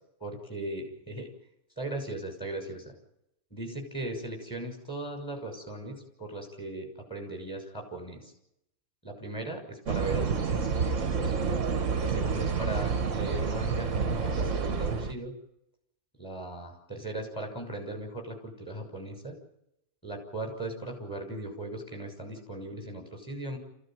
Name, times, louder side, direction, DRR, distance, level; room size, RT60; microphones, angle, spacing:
voice 1, 0.2-1.3 1.8-2.9 3.5-8.3 9.0-11.4 12.0-15.3 16.2-19.4 20.0-23.6, right 2 dB, 10° left, 4 dB, 6.5 m, -38 dB
sound 1, 9.9-15.1, right 5 dB, 50° right, 1.6 m, -29 dB
27.5 x 16.0 x 9.2 m, 0.82 s
omnidirectional pair, 1.8 m